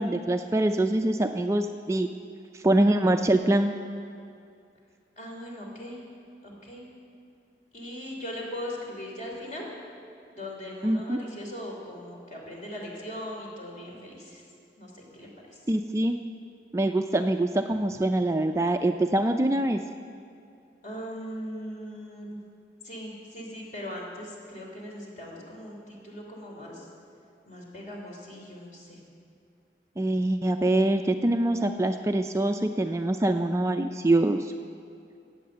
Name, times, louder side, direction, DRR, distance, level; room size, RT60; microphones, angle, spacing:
voice 1, 0.0-2.1 2.5-3.7 10.8-11.2 15.7-16.1 16.7-19.8 30.0-34.5, right 1 dB, 15° right, 6 dB, 0.3 m, -24 dB
voice 2, 5.2-6.0 6.4-6.8 7.7-9.7 10.3-14.4 14.8-15.7 20.8-22.4 22.8-26.9 27.5-29.0, equal, 45° left, -1 dB, 3.1 m, -39 dB
15.0 x 8.6 x 7.8 m, 2.4 s
head